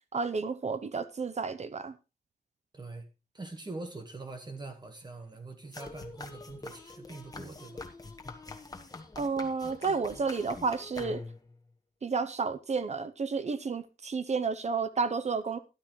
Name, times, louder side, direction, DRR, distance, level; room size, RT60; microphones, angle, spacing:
voice 1, 0.1-1.9 9.2-11.2 12.0-15.6, right 4 dB, 45° right, 0.7 m, -31 dB
voice 2, 2.7-3.1 3.3-7.9, right 3 dB, 30° right, 1.5 m, -43 dB
sound 1, 5.7-11.5, left 3 dB, 25° left, 1.4 m, -44 dB
13.0 x 11.5 x 3.1 m
wide cardioid pair, 155°, 15 cm